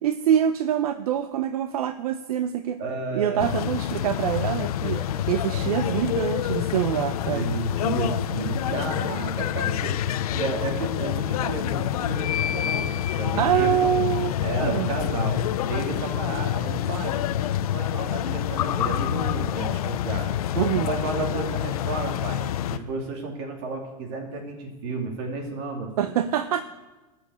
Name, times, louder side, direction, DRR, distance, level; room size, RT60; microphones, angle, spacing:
voice 1, 0.0-2.8 3.1-7.5 13.4-14.3 14.6-14.9 20.6-20.9 26.0-26.6, right 10 dB, 70° right, 10 dB, 0.7 m, -25 dB
voice 2, 2.8-3.4 5.1-6.2 7.3-10.0 10.3-13.8 14.4-15.4 15.7-17.2 17.5-20.3 20.7-22.4 22.7-26.1, right 3 dB, 40° right, 2 dB, 2.7 m, -32 dB
sound 1, 3.4-22.8, left 11 dB, 65° left, 0.6 m, -27 dB
13.5 x 5.9 x 8.6 m, 1.2 s
supercardioid pair, 165°, 20 cm